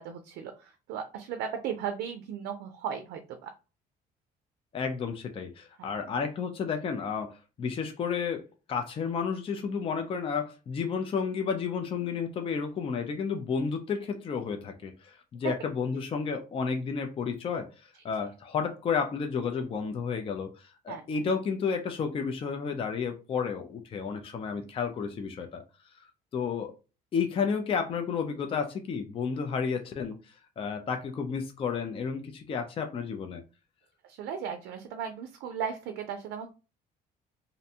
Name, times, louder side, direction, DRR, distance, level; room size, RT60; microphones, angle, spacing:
voice 1, 0.0-3.5 5.8-5.9 15.4-15.5 20.9-21.0 34.1-36.5, right 7 dB, 85° right, 0.4 m, -36 dB
voice 2, 4.7-8.4 8.7-25.6 26.3-26.7 27.1-33.4, left 6 dB, 35° left, 0.4 m, -32 dB
2.5 x 2.1 x 2.7 m
cardioid pair, 110°, 17 cm